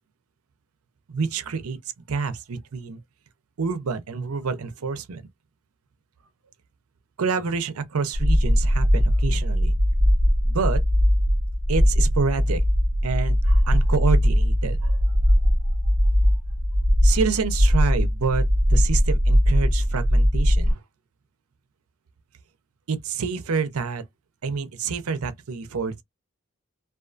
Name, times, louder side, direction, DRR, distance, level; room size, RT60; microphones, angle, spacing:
voice 1, 1.1-1.8 2.1-3.0 3.6-5.2 7.2-9.8 10.4-10.8 11.7-12.6 13.0-15.0 17.0-20.8 22.9-24.0 24.4-26.0, right 5 dB, 85° right, 0.6 m, -27 dB
sound 1, 8.1-20.7, equal, 30° right, 0.8 m, -20 dB
2.4 x 2.4 x 2.4 m
head